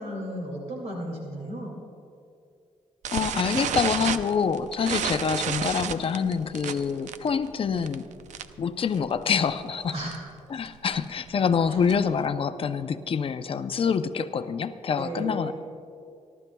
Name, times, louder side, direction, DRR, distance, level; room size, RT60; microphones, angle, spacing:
voice 1, 0.0-1.7 9.9-10.2 11.7-11.8 15.0-15.5, equal, 60° right, -2 dB, 2.5 m, -34 dB
sound 1, 3.0-8.7 8.9-9.2 9.5-9.6 9.9-10.2 10.7-12.2, right 8 dB, 80° right, 0.6 m, -31 dB
voice 2, 3.1-8.1 8.6-9.9 10.5-15.5, left 6 dB, 50° left, 10 dB, 0.6 m, -26 dB
29.5 x 12.0 x 2.3 m, 2.4 s
cardioid pair, 100°, 12 cm